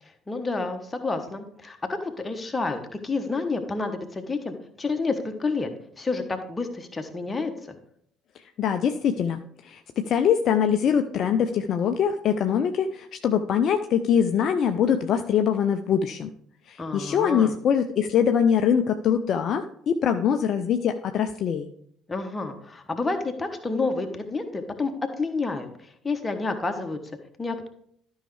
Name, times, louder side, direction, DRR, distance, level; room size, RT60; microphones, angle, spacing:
voice 1, 0.3-5.7 6.0-7.5 16.8-17.5 22.1-25.7 26.0-27.0 27.4-27.7, left 3 dB, 20° left, 6 dB, 1.2 m, -29 dB
voice 2, 8.6-9.4 9.7-9.8 10.1-16.3 16.7-21.7, left 8 dB, 50° left, 7 dB, 0.4 m, -23 dB
12.5 x 5.6 x 3.3 m, 0.66 s
figure-of-eight pair, 55°, 0 cm